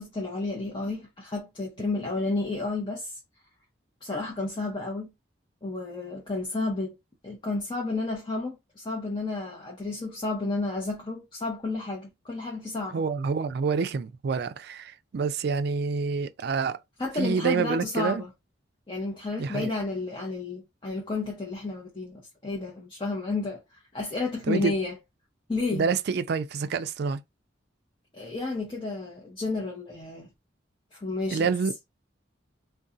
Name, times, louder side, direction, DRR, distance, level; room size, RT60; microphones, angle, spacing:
voice 1, 0.0-3.2 4.0-5.1 5.6-6.9 7.2-13.0 17.0-18.3 18.9-25.0 25.5-25.9 28.1-30.3 30.9-31.5, left 3 dB, 25° left, 0.7 m, -31 dB
voice 2, 12.9-16.8 17.2-18.2 19.4-19.7 24.5-24.7 25.7-27.2 31.3-31.7, right 5 dB, 55° right, 0.3 m, -27 dB
2.6 x 2.2 x 3.7 m
head